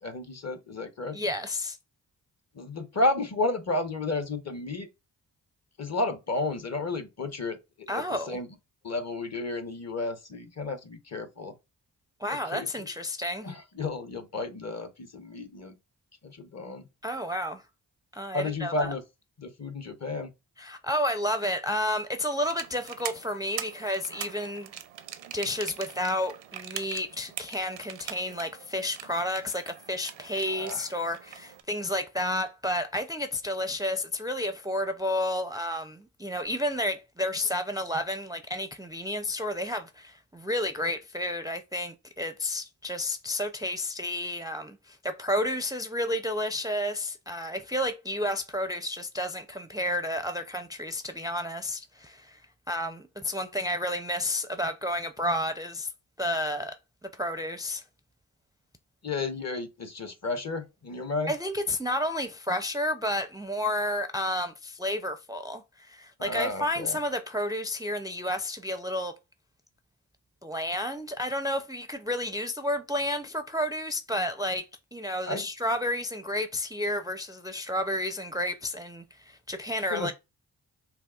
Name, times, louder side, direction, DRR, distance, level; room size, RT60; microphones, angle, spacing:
voice 1, 0.0-1.2 2.5-4.9 5.8-8.5 8.8-11.5 12.5-12.9 13.4-15.8 16.2-16.9 18.3-19.0 19.4-20.3 30.5-30.9 59.0-61.3 66.2-67.0 75.2-75.5 79.9-80.1, left 2 dB, 40° left, 0.8 m, -32 dB
voice 2, 1.1-1.8 7.9-8.4 12.2-13.5 17.0-17.6 18.1-18.9 20.6-24.7 25.3-52.4 52.7-55.9 56.2-56.8 57.0-57.8 61.3-69.1 70.4-74.6 74.9-80.1, left 1 dB, 10° right, 0.4 m, -31 dB
sound 1, 22.4-31.6, right 10 dB, 85° right, 0.6 m, -42 dB
5.7 x 2.1 x 2.4 m
supercardioid pair, 40°, 42 cm